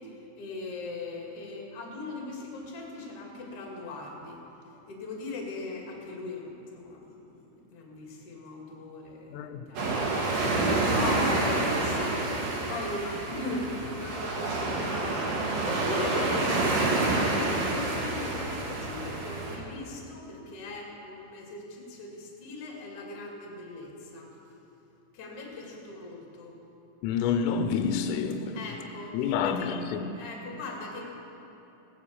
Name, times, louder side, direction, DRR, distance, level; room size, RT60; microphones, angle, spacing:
voice 1, 0.4-4.4 4.9-24.3 25.1-26.5 28.5-29.7 30.2-31.1, left 2 dB, 40° left, 2.6 m, -39 dB
voice 2, 9.3-9.6 10.2-10.9 27.0-28.6 29.1-30.2, left 6 dB, 90° left, 3.3 m, -29 dB
sound 1, 9.8-19.6, right 2 dB, 50° right, 2.9 m, -28 dB
17.5 x 10.0 x 7.2 m
omnidirectional pair, 5.6 m